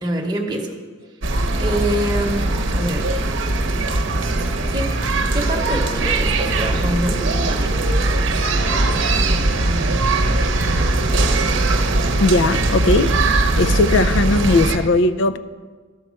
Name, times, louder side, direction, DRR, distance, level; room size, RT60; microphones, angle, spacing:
voice 1, 0.0-0.8 1.6-3.2 4.7-4.9 5.3-7.7 8.5-9.2, right 1 dB, 20° right, -1 dB, 1.0 m, -26 dB
sound 1, 1.2-14.8, right 2 dB, 70° right, 0.8 m, -20 dB
voice 2, 12.2-13.1 13.6-15.4, left 2 dB, 65° left, 13 dB, 0.4 m, -17 dB
13.0 x 4.5 x 6.3 m, 1.4 s
head